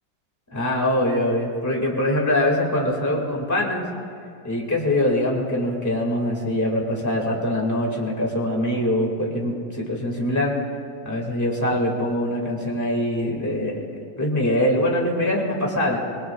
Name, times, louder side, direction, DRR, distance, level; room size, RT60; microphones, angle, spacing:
voice 1, 0.5-3.8 4.4-10.5 11.0-13.8 14.2-16.0, left 1 dB, 10° left, -1 dB, 2.2 m, -23 dB
26.0 x 20.5 x 2.4 m, 2.3 s
omnidirectional pair, 1.7 m